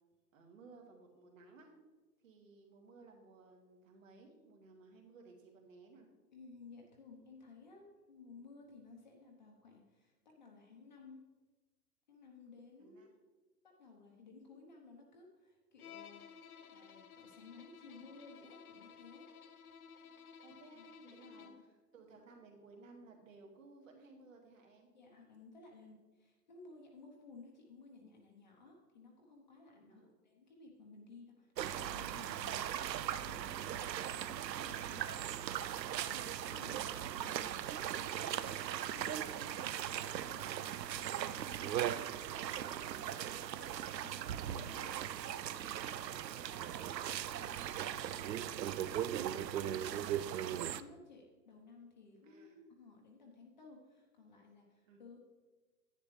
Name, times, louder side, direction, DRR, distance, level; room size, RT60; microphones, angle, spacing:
voice 1, 0.3-1.7 2.2-6.1 12.8-13.1 20.4-24.9 29.7-30.1 35.2-35.4 36.6-36.9 41.2-44.0 44.4-47.2 47.5-48.7 52.2-52.6 54.9-55.0, right 3 dB, 50° right, 2 dB, 2.1 m, -59 dB
voice 2, 6.3-11.2 12.1-13.0 13.6-16.2 16.7-19.3 20.7-21.6 24.9-32.6 33.0-35.4 36.1-41.1 44.0-45.0 47.3-47.6 47.8-48.3 48.9-55.2, left 3 dB, 25° left, 0 dB, 1.0 m, -57 dB
Bowed string instrument, 15.8-21.7, left 7 dB, 60° left, 0.9 m, -55 dB
sound 1, 31.6-50.8, right 11 dB, 90° right, 0.6 m, -39 dB
10.5 x 10.0 x 3.3 m, 1.2 s
hypercardioid pair, 175°, 49 cm